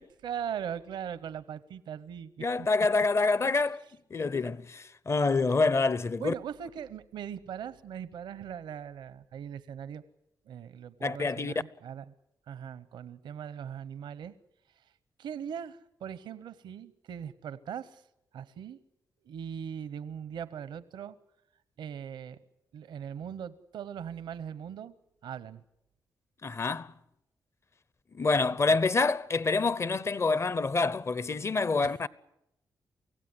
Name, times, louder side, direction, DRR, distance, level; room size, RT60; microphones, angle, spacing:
voice 1, 0.0-2.7 6.2-10.0 10.5-12.0 12.5-14.3 15.2-18.0 18.3-18.8 19.2-21.2 21.8-22.4 22.7-24.9 25.2-25.6 28.6-28.8 31.8-32.0, right 8 dB, 90° right, 0.9 m, -40 dB
voice 2, 2.4-3.8 4.1-6.3 11.0-11.5 26.4-26.9 28.1-32.1, left 3 dB, 35° left, 0.8 m, -27 dB
24.5 x 16.5 x 9.7 m
cardioid pair, 70°, 8 cm